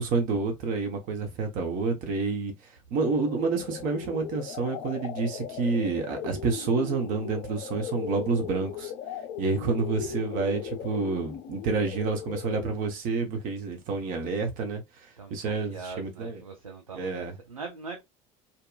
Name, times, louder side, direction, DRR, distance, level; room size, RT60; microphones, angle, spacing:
voice 1, 0.0-2.5 2.9-8.9 9.4-14.8 15.3-16.4 16.9-17.3, right 4 dB, 50° right, 0.9 m, -29 dB
sound 1, 3.0-12.9, left 8 dB, 50° left, 0.5 m, -38 dB
voice 2, 10.8-11.3 15.2-18.0, right 4 dB, 85° right, 0.5 m, -42 dB
2.8 x 2.2 x 2.3 m
figure-of-eight pair, 65°, 17 cm